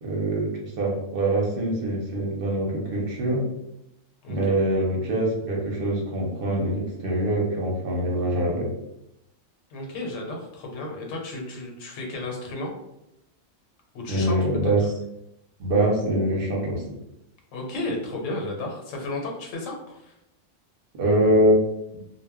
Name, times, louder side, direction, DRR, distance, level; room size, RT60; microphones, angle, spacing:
voice 1, 0.0-3.4 4.3-8.7 14.1-14.9 15.6-16.8 20.9-21.6, right 1 dB, 55° right, -1 dB, 0.8 m, -24 dB
voice 2, 4.2-4.6 9.7-12.7 13.9-14.9 17.5-20.1, left 2 dB, 80° left, 0 dB, 1.0 m, -33 dB
2.1 x 2.1 x 3.4 m, 0.86 s
omnidirectional pair, 1.3 m